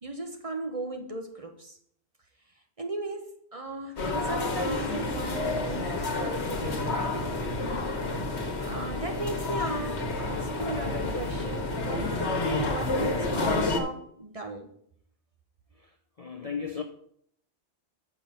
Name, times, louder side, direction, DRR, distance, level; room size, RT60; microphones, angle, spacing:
voice 1, 0.0-1.8 2.8-8.2 8.6-14.7, right 2 dB, 30° right, 1.1 m, -37 dB
sound 1, 4.0-13.8, left 2 dB, 75° left, 1.5 m, -30 dB
voice 2, 15.8-16.8, left 6 dB, 40° left, 0.6 m, -36 dB
6.9 x 5.8 x 6.7 m
omnidirectional pair, 1.2 m